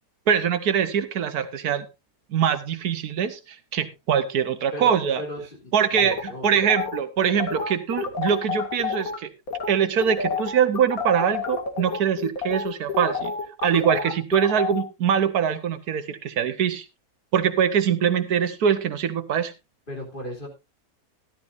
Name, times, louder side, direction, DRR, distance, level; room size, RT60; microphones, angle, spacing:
voice 1, 0.3-1.8 2.3-5.2 5.7-9.3 9.7-13.3 13.6-16.8 17.3-19.5, right 8 dB, 80° right, 11 dB, 1.5 m, -23 dB
voice 2, 4.7-6.5 19.9-20.5, equal, 30° left, 0 dB, 3.3 m, -36 dB
sound 1, 5.9-9.2 9.5-9.7 10.0-14.8, left 5 dB, 65° left, 2.6 m, -29 dB
14.0 x 12.0 x 2.6 m, 0.24 s
omnidirectional pair, 1.6 m